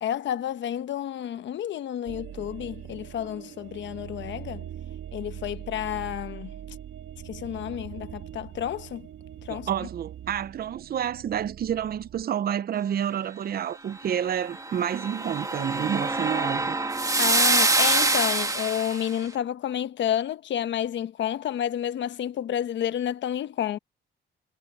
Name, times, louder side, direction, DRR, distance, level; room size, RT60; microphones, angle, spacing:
voice 1, 0.0-4.7 5.1-6.5 7.2-9.1 9.4-9.7 17.2-23.8, left 10 dB, 70° left, 1.1 m, -30 dB
sound 1, 2.1-12.2, right 10 dB, 75° right, 2.3 m, -42 dB
voice 2, 9.5-16.8, right 9 dB, 50° right, 0.7 m, -29 dB
sound 2, 14.4-19.1, right 2 dB, 15° right, 2.2 m, -25 dB
cardioid pair, 90°, 20 cm